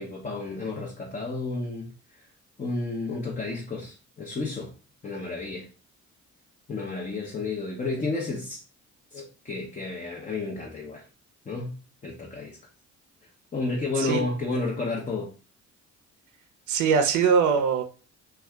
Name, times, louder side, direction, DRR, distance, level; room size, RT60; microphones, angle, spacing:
voice 1, 0.0-1.9 2.6-4.7 5.0-5.7 6.7-8.6 9.1-11.0 11.5-11.8 12.0-12.6 13.5-15.3, left 3 dB, 25° left, 0.7 m, -31 dB
voice 2, 16.7-17.8, right 6 dB, 80° right, 0.5 m, -21 dB
2.7 x 2.3 x 3.3 m
cardioid pair, 90°, 30 cm